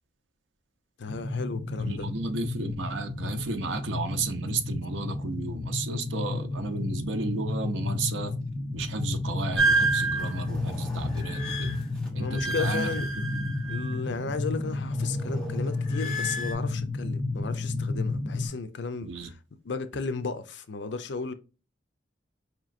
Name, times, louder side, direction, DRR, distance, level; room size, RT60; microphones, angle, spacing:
voice 1, 1.0-2.1 11.6-11.8 12.2-13.1 13.7-19.4 19.6-21.3, left 4 dB, 70° left, 0.5 m, -34 dB
sound 1, 1.1-18.5, left 2 dB, 30° left, 0.7 m, -32 dB
voice 2, 1.8-8.3 8.7-11.8 12.1-13.7 19.0-19.3, right 3 dB, 85° right, 0.6 m, -34 dB
sound 2, 9.6-14.3 14.6-16.5, right 3 dB, 5° left, 1.3 m, -30 dB
4.8 x 3.0 x 2.5 m
head